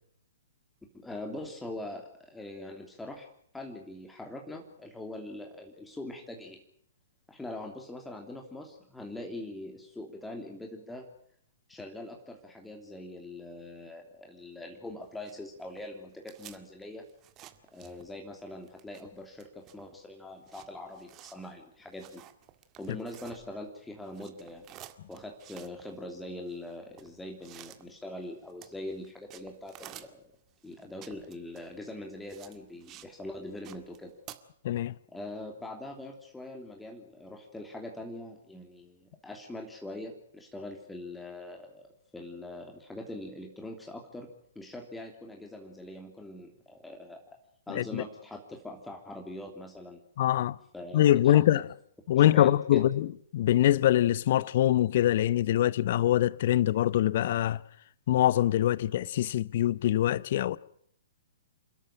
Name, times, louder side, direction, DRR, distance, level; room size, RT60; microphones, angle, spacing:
voice 1, 0.9-3.3 3.5-6.6 7.3-11.1 11.7-17.1 17.7-22.2 22.8-24.6 25.1-30.2 30.6-34.1 35.1-41.8 42.1-47.2 47.7-50.0 50.7-51.4 52.1-52.8, left 1 dB, 5° left, 3.0 m, -42 dB
sound 1, 15.0-18.3 18.6-23.8 24.0-33.1 33.4-34.4, right 13 dB, 25° right, 1.9 m, -52 dB
voice 2, 47.7-48.0 50.2-50.6 50.9-51.6 52.1-57.6 58.1-60.6, left 12 dB, 50° left, 0.8 m, -24 dB
29.5 x 13.0 x 8.9 m
figure-of-eight pair, 120°, 0 cm